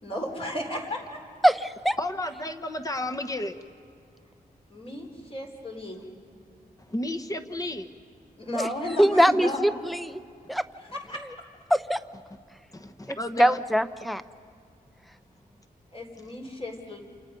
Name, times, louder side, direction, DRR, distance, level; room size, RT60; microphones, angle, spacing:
voice 1, 0.0-1.2 4.7-6.0 8.4-9.6 10.8-11.2 15.9-17.0, left 1 dB, 35° left, 1 dB, 4.1 m, -34 dB
voice 2, 1.4-2.0 8.5-8.7 9.0-10.1 10.5-10.6 11.7-12.0 13.4-14.2, equal, ahead, 13 dB, 0.7 m, -22 dB
voice 3, 2.0-3.6 6.9-7.9 12.7-13.6, left 1 dB, 20° left, 8 dB, 1.2 m, -32 dB
29.5 x 28.0 x 5.3 m, 2.2 s
wide cardioid pair, 125°, 16 cm